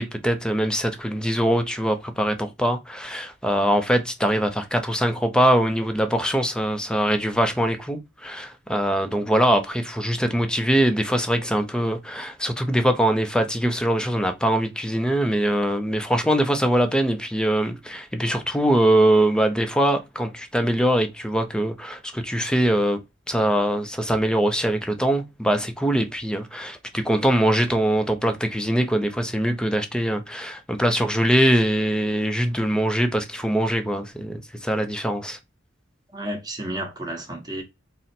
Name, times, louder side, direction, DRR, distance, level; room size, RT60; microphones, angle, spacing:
voice 1, 0.0-23.0 23.3-35.4, right 1 dB, 5° left, 0.5 m, -22 dB
voice 2, 36.1-37.6, right 1 dB, 20° right, 1.0 m, -32 dB
3.8 x 2.1 x 4.2 m
head